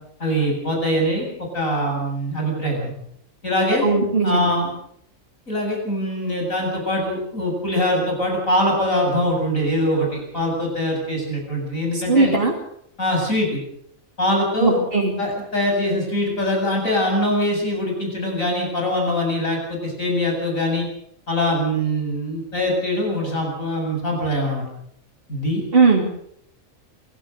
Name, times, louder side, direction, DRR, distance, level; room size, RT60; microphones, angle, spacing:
voice 1, 0.2-1.3 1.5-2.9 3.4-3.9 4.2-4.7 5.5-12.3 13.0-13.6 14.2-14.8 15.2-20.9 21.3-24.6 25.3-25.6, equal, 90° left, 1 dB, 8.3 m, -23 dB
voice 2, 3.8-4.6 11.9-12.5 14.6-15.1 25.7-26.0, right 4 dB, 45° right, -1 dB, 3.1 m, -18 dB
26.0 x 17.0 x 6.6 m, 0.71 s
omnidirectional pair, 1.4 m